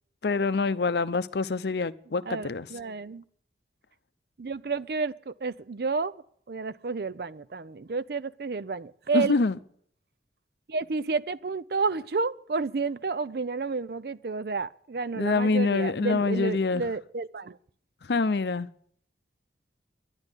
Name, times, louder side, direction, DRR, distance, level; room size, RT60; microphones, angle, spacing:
voice 1, 0.2-2.7 9.1-9.6 15.2-16.8 18.1-18.7, left 3 dB, 70° left, 0.6 m, -25 dB
voice 2, 2.3-3.2 4.4-6.1 6.5-9.4 10.7-17.6, right 4 dB, 60° right, 0.5 m, -31 dB
12.0 x 10.5 x 9.8 m
head